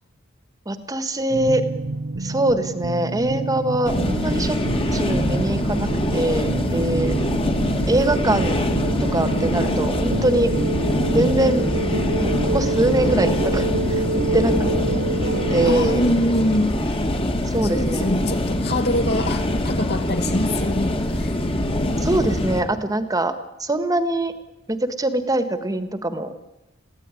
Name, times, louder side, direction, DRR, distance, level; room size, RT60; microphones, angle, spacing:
voice 1, 0.6-1.6 2.2-4.6 4.9-7.1 7.9-8.6 9.0-10.5 11.1-11.7 12.2-14.0 14.3-14.7 15.5-16.5 17.4-18.0 22.0-23.3 23.6-24.3 24.7-26.3, right 1 dB, 20° right, 10 dB, 1.6 m, -23 dB
sound 1, 1.3-15.7, right 2 dB, 60° right, 0.9 m, -27 dB
sound 2, 3.8-22.6, left 1 dB, 25° left, 2.1 m, -24 dB
voice 2, 15.6-16.7 17.7-21.3, left 1 dB, 55° left, 5 dB, 2.8 m, -24 dB
23.0 x 16.0 x 9.9 m, 1.0 s
head